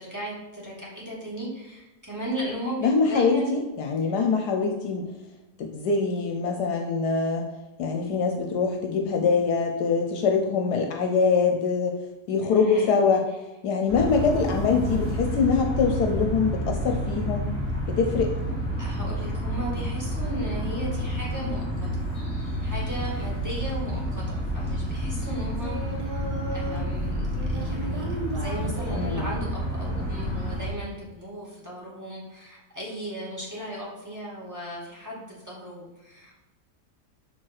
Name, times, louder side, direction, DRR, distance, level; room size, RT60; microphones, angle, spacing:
voice 1, 0.0-3.5 4.0-4.2 12.5-13.0 18.8-21.9 22.3-36.3, equal, 10° right, -6 dB, 2.1 m, -36 dB
voice 2, 2.8-5.1 5.6-7.4 7.8-12.0 12.3-13.2 13.6-17.5 17.9-18.3 28.6-29.2, left 5 dB, 75° left, 3 dB, 1.2 m, -24 dB
sound 1, 13.9-30.7, equal, 20° left, 2.3 m, -29 dB
Singing, 25.5-26.9 27.3-29.3 30.1-30.7, right 1 dB, 70° right, 1.7 m, -36 dB
6.1 x 4.6 x 4.7 m, 1.1 s
omnidirectional pair, 1.8 m